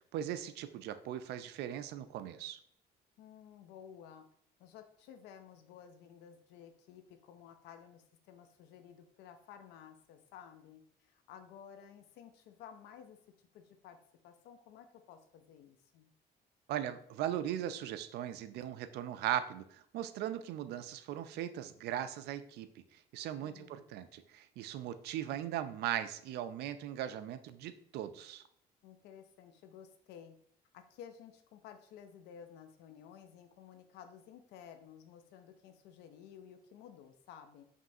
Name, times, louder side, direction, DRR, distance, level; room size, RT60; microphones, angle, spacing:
voice 1, 0.1-2.6 16.7-22.7 23.1-28.4, right 11 dB, 75° right, 11 dB, 0.4 m, -39 dB
voice 2, 3.2-4.3 4.6-13.2 13.5-14.0 14.2-16.1 23.4-23.9 28.8-30.4 30.7-37.6, left 8 dB, 90° left, 7 dB, 0.5 m, -54 dB
5.2 x 3.2 x 2.6 m, 0.66 s
cardioid pair, 110°, 17 cm